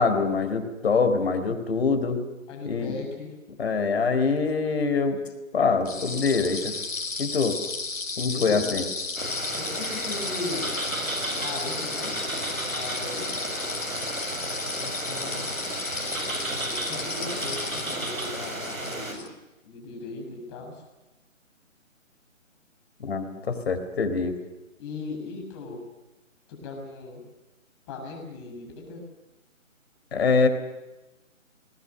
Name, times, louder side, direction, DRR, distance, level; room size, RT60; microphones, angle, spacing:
voice 1, 0.0-2.2 2.7-2.9 3.6-5.2 5.5-6.7 7.2-7.6 8.2-8.8 23.0-24.3 30.1-30.5, left 4 dB, 50° left, 8 dB, 4.2 m, -24 dB
voice 2, 2.5-3.3 5.8-6.5 8.3-8.8 9.5-10.7 11.4-12.2 12.4-13.3 14.8-15.5 16.6-19.4 19.6-20.8 24.8-25.8 26.5-27.2 27.9-29.0, left 3 dB, 20° left, 1 dB, 6.5 m, -38 dB
sound 1, 5.9-19.3, left 4 dB, 70° left, 4.3 m, -34 dB
sound 2, 9.2-19.1, right 1 dB, 90° right, 7.0 m, -33 dB
27.5 x 20.5 x 6.6 m, 1.1 s
figure-of-eight pair, 150°, 40 cm